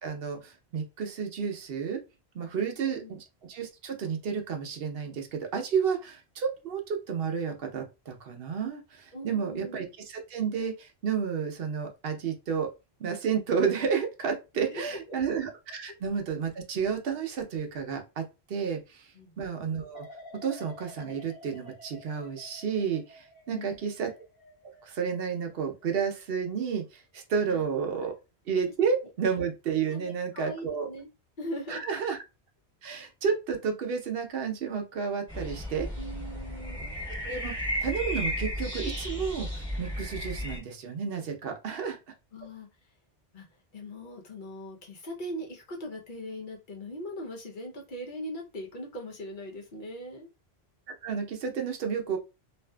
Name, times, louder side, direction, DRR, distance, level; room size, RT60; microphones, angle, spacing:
voice 1, 0.0-2.0 2.3-12.7 13.0-19.1 19.4-20.1 20.4-24.1 24.8-28.1 28.5-30.9 31.7-32.2 32.8-35.9 37.2-37.5 37.8-42.0 51.0-52.2, right 6 dB, 70° right, 4 dB, 0.8 m, -31 dB
voice 2, 2.5-3.1 9.1-9.8 14.5-15.2 19.1-19.4 23.5-23.8 27.4-27.6 29.9-31.1 31.4-31.8 36.0-36.9 42.3-42.7 43.3-43.5 43.7-50.3, equal, 55° left, 0 dB, 0.8 m, -40 dB
sound 1, 19.9-26.9 27.3-27.7, left 1 dB, 25° left, 0.8 m, -52 dB
sound 2, 35.3-40.6, equal, 5° left, 1.0 m, -34 dB
2.6 x 2.5 x 2.2 m, 0.27 s
omnidirectional pair, 1.1 m